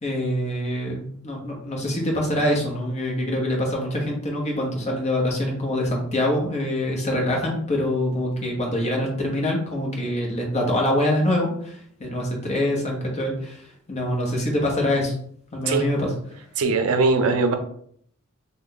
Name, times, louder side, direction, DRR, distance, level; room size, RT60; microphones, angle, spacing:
voice 1, 0.0-13.6 13.9-15.1 15.5-16.1, left 1 dB, 30° left, 0 dB, 0.9 m, -25 dB
voice 2, 16.6-17.5, right 3 dB, 80° right, 6 dB, 0.5 m, -20 dB
3.1 x 2.2 x 3.8 m, 0.63 s
head